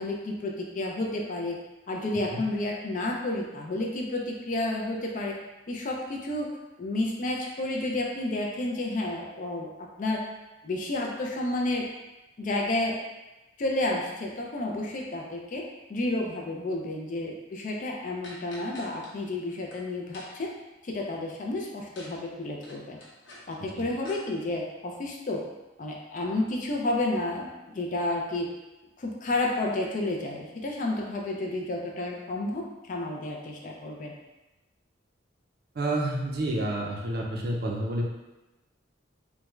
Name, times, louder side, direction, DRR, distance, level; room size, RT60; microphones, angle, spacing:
voice 1, 0.0-1.6 1.9-5.4 5.7-6.5 6.8-9.7 10.0-10.2 10.6-11.9 12.4-13.0 13.6-20.5 20.8-23.0 23.5-25.4 25.8-28.5 29.0-34.1, left 2 dB, 40° left, 0 dB, 0.4 m, -31 dB
sound 1, 18.2-19.1 19.5-19.8 20.1-20.5 21.9-22.2 22.4-24.2, left 1 dB, 65° left, 0.8 m, -47 dB
voice 2, 35.7-38.0, right 1 dB, 50° right, 0 dB, 0.5 m, -29 dB
3.4 x 2.2 x 3.0 m, 1.1 s
head